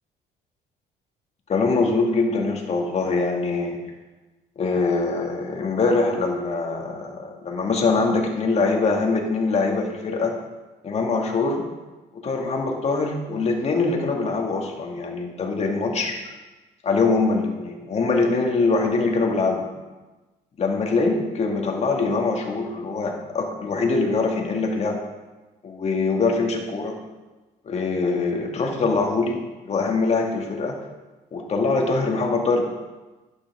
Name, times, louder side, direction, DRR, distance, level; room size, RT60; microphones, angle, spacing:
voice 1, 1.5-3.8 4.6-10.3 10.8-11.6 12.1-16.2 16.8-19.7 20.6-25.0 25.6-27.0 27.6-30.8 31.3-32.6, left 3 dB, 40° left, 1 dB, 2.0 m, -23 dB
11.5 x 9.3 x 3.6 m, 1.2 s
cardioid pair, 110°, 17 cm